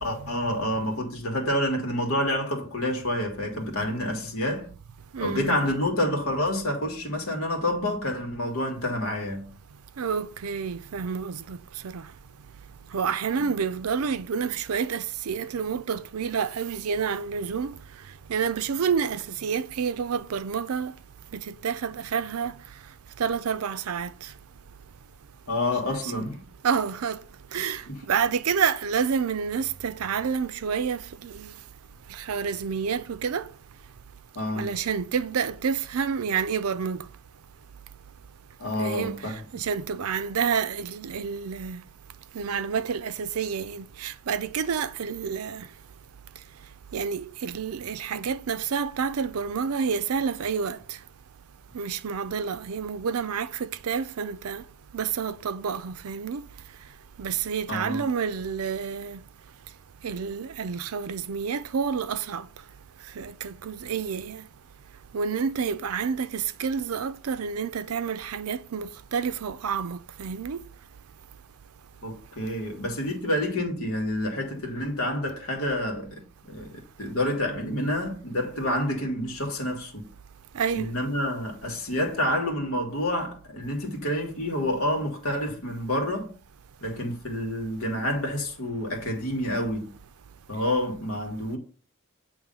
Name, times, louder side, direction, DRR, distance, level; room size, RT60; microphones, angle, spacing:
voice 1, 0.0-4.7 5.2-9.5 13.4-13.5 25.5-26.4 27.9-28.0 34.4-34.7 38.6-39.3 57.7-58.0 72.0-80.1 80.7-86.3 86.8-89.9 90.5-91.6, left 1 dB, 75° left, 1.9 m, -28 dB
voice 2, 5.1-5.6 10.0-11.6 11.8-12.0 12.9-17.7 18.3-20.9 21.3-22.5 23.2-24.1 25.9-26.3 26.6-27.2 27.5-27.8 28.1-31.5 32.3-33.5 34.6-37.0 38.8-39.2 39.5-41.8 42.3-45.7 46.9-50.8 51.7-54.6 54.9-56.4 57.2-59.2 60.0-62.5 63.2-64.4 65.1-70.6 80.5-80.9, right 6 dB, 85° right, 0.5 m, -29 dB
8.8 x 3.2 x 5.4 m
head